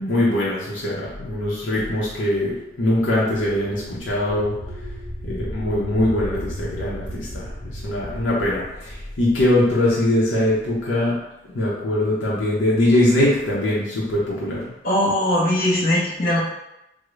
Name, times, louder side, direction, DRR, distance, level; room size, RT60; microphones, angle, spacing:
voice 1, 0.0-11.2 11.5-14.7, left 1 dB, 85° left, -6 dB, 0.7 m, -22 dB
sound 1, 3.8-9.8, equal, 5° right, 0.8 m, -35 dB
voice 2, 14.8-16.4, left 1 dB, 50° left, -3 dB, 0.7 m, -20 dB
3.6 x 2.0 x 3.1 m, 0.88 s
head